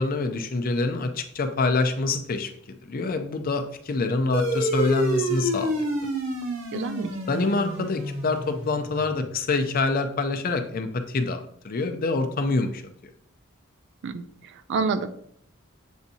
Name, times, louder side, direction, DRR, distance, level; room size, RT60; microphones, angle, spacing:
voice 1, 0.0-2.5 2.9-5.9 7.3-12.8, left 3 dB, 45° left, 6 dB, 0.5 m, -26 dB
sound 1, 4.3-9.2, right 1 dB, 75° right, 1.0 m, -28 dB
voice 2, 6.7-7.2 14.0-15.1, right 4 dB, 60° right, 11 dB, 0.4 m, -28 dB
7.1 x 2.6 x 2.7 m, 0.66 s
head